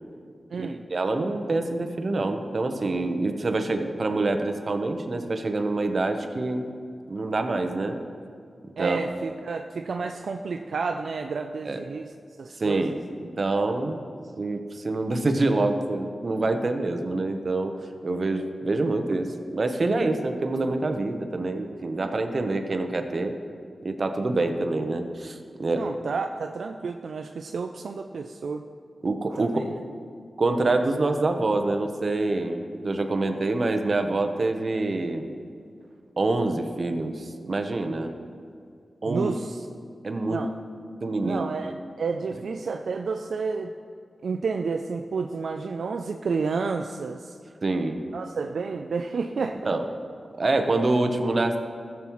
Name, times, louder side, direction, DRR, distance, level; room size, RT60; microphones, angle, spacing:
voice 1, 0.6-6.7 7.1-8.0 8.8-9.0 11.6-11.8 12.6-12.9 13.2-14.0 14.4-17.8 18.0-23.3 23.8-25.8 29.0-29.6 30.4-35.2 36.2-38.1 39.0-39.3 40.0-40.5 41.0-41.5 47.6-48.0 49.6-49.9 50.4-51.6, right 2 dB, 55° right, 6 dB, 0.9 m, -26 dB
voice 2, 8.8-12.1 12.4-13.0 25.8-28.6 29.4-29.7 39.1-39.7 40.3-40.5 41.2-43.7 44.2-47.4 48.1-49.7, right 4 dB, 80° right, 5 dB, 0.3 m, -30 dB
15.5 x 7.2 x 3.1 m, 2.3 s
cardioid pair, 60°, 0 cm